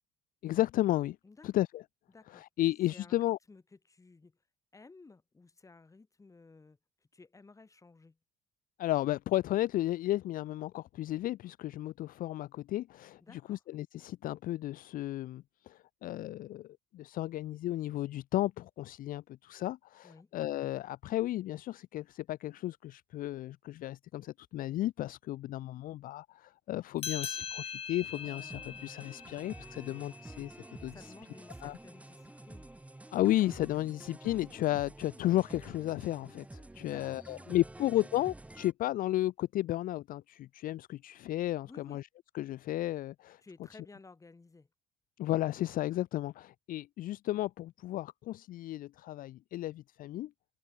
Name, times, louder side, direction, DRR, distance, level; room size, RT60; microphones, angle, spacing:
voice 1, 0.4-1.2 1.4-1.8 2.3-3.4 8.8-30.6 30.8-31.1 31.6-31.8 33.1-42.1 42.3-43.4 45.2-50.3, left 15 dB, 55° left, 0.4 m, -33 dB
voice 2, 2.1-3.2 3.5-4.4 4.7-6.8 7.1-8.2 13.2-13.6 20.0-20.3 30.9-32.7 36.8-37.5 41.6-42.0 43.4-44.7, left 3 dB, 20° left, 2.4 m, -56 dB
sound 1, 27.0-31.9, left 7 dB, 35° left, 0.9 m, -43 dB
sound 2, 28.1-38.7, right 2 dB, 10° right, 0.9 m, -50 dB
open air
cardioid pair, 110°, 17 cm